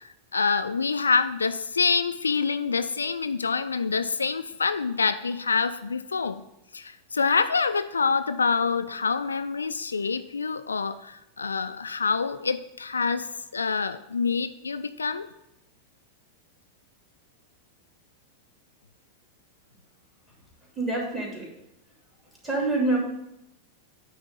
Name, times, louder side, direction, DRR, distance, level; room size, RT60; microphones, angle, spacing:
voice 1, 0.0-6.4 6.7-13.3 13.5-15.3, left 5 dB, 75° left, 11 dB, 0.3 m, -26 dB
voice 2, 20.8-21.5 22.4-23.0, right 2 dB, 15° right, -4 dB, 3.1 m, -26 dB
9.4 x 3.6 x 6.7 m, 0.83 s
figure-of-eight pair, 90°, 0 cm